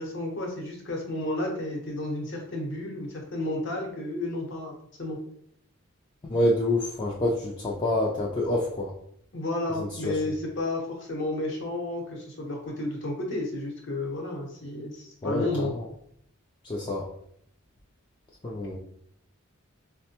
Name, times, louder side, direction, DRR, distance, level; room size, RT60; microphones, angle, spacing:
voice 1, 0.0-4.7 5.0-5.2 9.3-15.7, left 2 dB, 55° left, 0 dB, 0.8 m, -32 dB
voice 2, 6.2-8.9 9.8-10.2 15.2-15.9 16.6-17.1 18.4-18.8, left 1 dB, 20° left, -4 dB, 0.3 m, -27 dB
4.2 x 2.1 x 2.8 m, 0.68 s
head